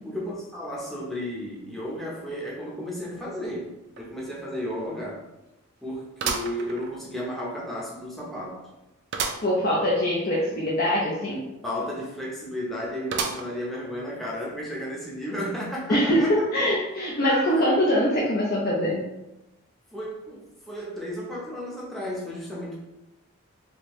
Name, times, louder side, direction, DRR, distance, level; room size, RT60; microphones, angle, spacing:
voice 1, 0.0-3.7 4.0-5.3 5.8-8.7 11.6-16.3 17.2-17.7 19.9-22.8, equal, ahead, -5 dB, 0.6 m, -33 dB
sound 1, 4.0-4.1 4.5-4.6 6.2-7.3 7.8-7.9 9.1-9.5 9.9-10.0 10.2-10.3 13.1-13.7 14.3-14.4 15.4-15.5, right 5 dB, 55° right, 0.4 m, -31 dB
voice 2, 9.4-11.5 15.9-19.0, equal, 45° left, -4 dB, 0.5 m, -23 dB
3.3 x 2.6 x 3.0 m, 0.95 s
head